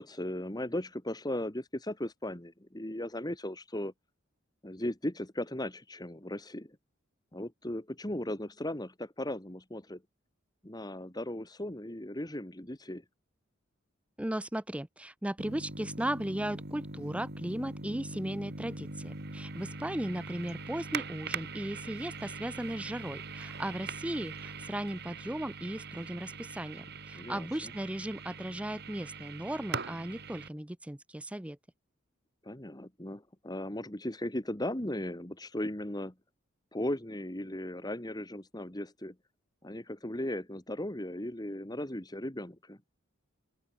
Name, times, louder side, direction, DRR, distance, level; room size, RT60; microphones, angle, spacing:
voice 1, 0.0-3.9 4.6-6.8 7.3-10.0 10.6-13.0 27.1-27.7 32.4-36.1 36.7-39.1 39.6-42.8, left 1 dB, 20° left, 2.1 m, -37 dB
voice 2, 14.2-31.6, right 1 dB, 5° right, 0.6 m, -36 dB
sound 1, 15.4-30.5, right 4 dB, 50° right, 4.5 m, -42 dB
open air
head